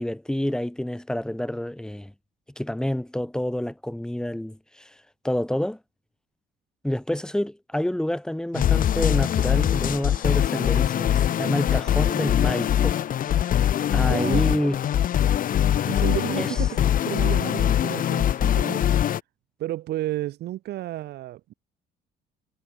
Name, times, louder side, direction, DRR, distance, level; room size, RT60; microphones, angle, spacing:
voice 1, 0.0-2.1 2.6-4.9 5.2-5.8 6.8-13.0 13.9-14.8 16.4-16.5, left 1 dB, 5° left, 7.4 m, -28 dB
sound 1, 8.5-19.2, left 10 dB, 55° left, 3.2 m, -22 dB
voice 2, 14.1-14.7 15.9-16.8 17.1-18.8 19.6-21.5, right 15 dB, 75° right, 5.6 m, -32 dB
cardioid pair, 110°, 17 cm